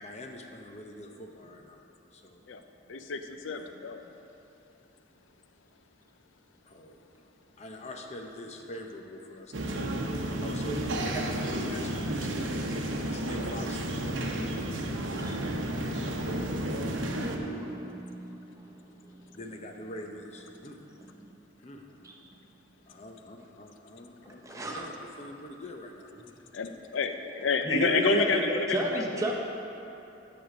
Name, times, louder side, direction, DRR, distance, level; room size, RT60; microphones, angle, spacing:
voice 1, 0.0-1.8 2.1-2.4 3.5-3.7 6.7-7.1 7.6-10.0 10.4-12.5 13.0-14.1 16.2-16.9 19.3-20.8 21.6-21.9 22.9-26.1, left 1 dB, 35° left, 3 dB, 0.7 m, -44 dB
voice 2, 2.9-4.0 26.5-29.3, left 4 dB, 85° left, 7 dB, 0.5 m, -29 dB
sound 1, 9.5-17.4, right 1 dB, 85° right, 0.8 m, -32 dB
voice 3, 15.2-15.5 16.1-19.4 20.6-21.4 22.0-22.1 24.4-24.8 27.6-29.3, right 2 dB, 15° right, -1 dB, 0.9 m, -35 dB
9.2 x 6.3 x 5.1 m, 2.9 s
head